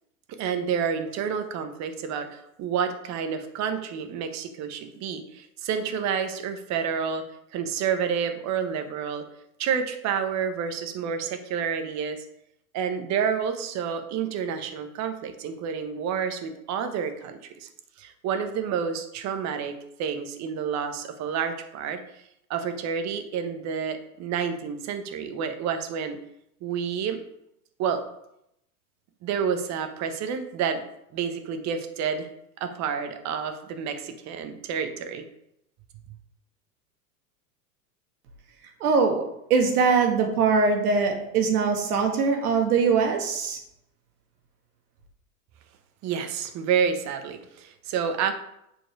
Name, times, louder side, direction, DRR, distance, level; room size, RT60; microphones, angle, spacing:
voice 1, 0.3-7.2 7.5-9.3 9.6-12.2 12.7-17.7 18.0-22.0 22.5-26.2 26.6-27.2 27.8-28.0 29.2-30.8 31.1-32.3 32.6-35.3 46.0-48.3, right 7 dB, 35° right, 8 dB, 1.2 m, -29 dB
voice 2, 38.8-39.3 39.5-43.6, right 5 dB, 70° right, 3 dB, 2.0 m, -22 dB
8.0 x 4.6 x 4.6 m, 0.79 s
hypercardioid pair, 105°, 45 cm